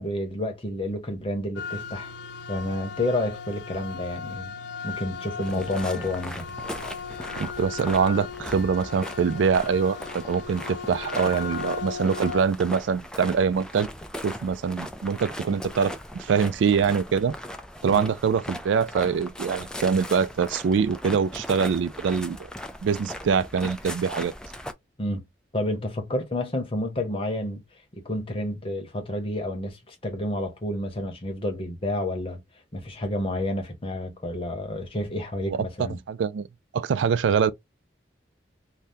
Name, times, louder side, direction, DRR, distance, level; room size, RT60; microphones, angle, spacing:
voice 1, 0.0-2.1 2.5-4.5 4.8-6.5 17.9-18.1 25.0-25.2 25.5-27.6 28.0-32.4 32.7-36.0, left 1 dB, 30° left, 0.8 m, -30 dB
sound 1, 1.6-12.4, left 6 dB, 75° left, 0.5 m, -37 dB
sound 2, 5.4-24.7, equal, 5° left, 0.3 m, -38 dB
voice 2, 7.4-13.9 14.2-17.3 17.8-22.4 22.8-24.3 35.5-36.5 36.7-37.5, right 6 dB, 85° right, 0.3 m, -24 dB
2.7 x 2.2 x 3.3 m
head